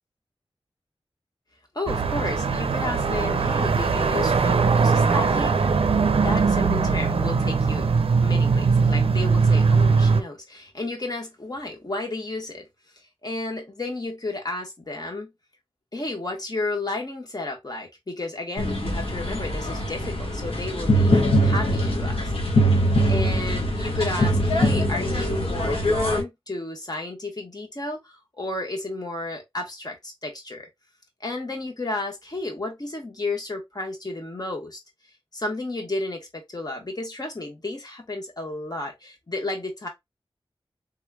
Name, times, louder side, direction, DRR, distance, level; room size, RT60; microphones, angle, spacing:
voice 1, 1.7-5.7 6.1-7.9 8.2-12.6 13.2-15.3 15.9-22.2 23.1-30.7 31.2-34.8 35.3-39.9, left 2 dB, 40° left, 1.4 m, -32 dB
sound 1, 1.9-10.2, right 5 dB, 75° right, 0.5 m, -21 dB
sound 2, 18.6-26.2, equal, 75° left, 1.4 m, -22 dB
3.7 x 3.1 x 2.3 m
wide cardioid pair, 60°, 10 cm